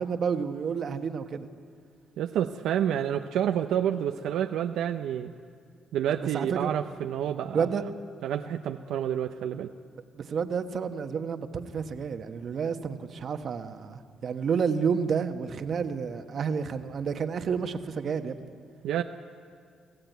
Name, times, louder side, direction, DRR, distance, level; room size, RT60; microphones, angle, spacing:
voice 1, 0.0-1.5 6.3-6.7 7.5-7.8 10.1-18.4, right 6 dB, 55° right, 7 dB, 1.3 m, -30 dB
voice 2, 2.2-5.3 5.9-7.7 8.2-9.7 18.8-19.0, right 10 dB, 85° right, 5 dB, 0.6 m, -29 dB
23.0 x 15.5 x 9.3 m, 2.2 s
cardioid pair, 90°, 0 cm